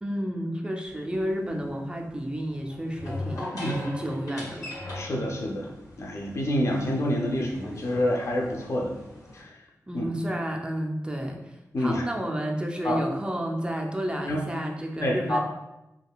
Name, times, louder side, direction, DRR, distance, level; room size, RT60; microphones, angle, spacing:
voice 1, 0.0-3.5 3.7-4.7 9.9-15.4, equal, 15° right, 1 dB, 0.4 m, -31 dB
sound 1, 0.9-9.4, left 2 dB, 85° left, 1.5 m, -40 dB
voice 2, 4.9-5.7 6.0-8.9 9.3-9.5 9.9-10.1 11.7-12.0 12.8-13.0 14.3-14.4 15.0-15.4, left 1 dB, 50° left, -1 dB, 0.5 m, -27 dB
3.6 x 2.3 x 2.3 m, 0.94 s
wide cardioid pair, 90°, 6 cm